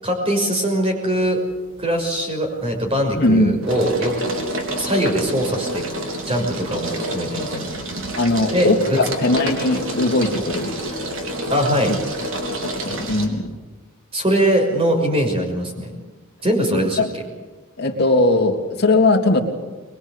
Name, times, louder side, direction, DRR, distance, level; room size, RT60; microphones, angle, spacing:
voice 1, 0.0-1.4 1.8-4.1 4.8-5.8 6.3-7.7 8.5-9.0 11.5-11.9 14.1-15.9 16.4-17.0, right 1 dB, 25° right, 2 dB, 6.0 m, -21 dB
sound 1, 1.2-1.8 2.1-13.3, right 1 dB, 60° right, 3.9 m, -29 dB
voice 2, 3.1-3.6 8.2-10.7 11.8-12.0 12.6-13.5 17.0-17.1 17.8-19.4, left 2 dB, 50° left, 0 dB, 3.2 m, -19 dB
23.5 x 23.0 x 8.4 m, 1.2 s
head